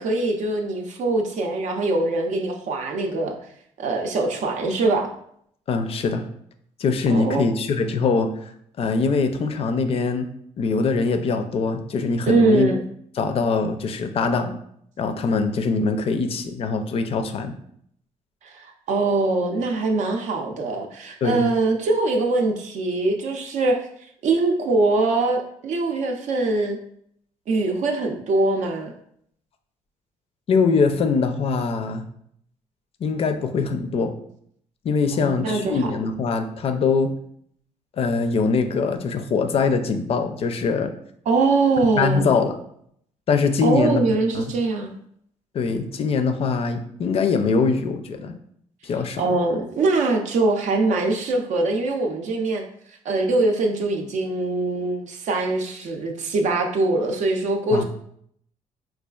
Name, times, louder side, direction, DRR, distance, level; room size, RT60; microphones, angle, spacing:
voice 1, 0.0-3.4 3.8-5.1 7.1-7.5 12.3-12.8 18.4-23.9 24.2-26.8 27.5-28.9 35.1-35.9 41.3-42.3 43.6-44.9 49.2-52.6 53.0-57.8, right 3 dB, 65° right, 2 dB, 0.5 m, -22 dB
voice 2, 5.7-6.3 6.8-8.5 8.8-10.3 10.6-12.7 13.2-14.5 15.0-17.6 21.2-21.4 30.5-32.0 33.0-34.2 34.8-37.1 38.0-40.9 42.0-42.6 43.3-44.5 45.5-48.3 48.8-49.2 57.7-57.8, left 4 dB, 50° left, 7 dB, 0.4 m, -22 dB
4.3 x 2.3 x 2.3 m, 0.68 s
cardioid pair, 95°, 13 cm